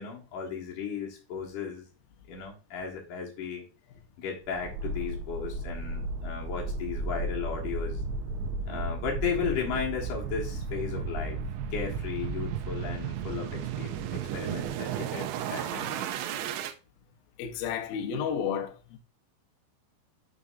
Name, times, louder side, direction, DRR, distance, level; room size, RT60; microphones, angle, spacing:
voice 1, 0.0-1.9 2.3-3.7 4.2-8.0 8.7-16.0, left 6 dB, 65° left, 2.1 m, -35 dB
sound 1, 4.5-16.7, right 4 dB, 80° right, 2.7 m, -34 dB
voice 2, 17.4-19.0, left 7 dB, 90° left, 2.1 m, -32 dB
6.8 x 6.6 x 2.5 m
omnidirectional pair, 5.8 m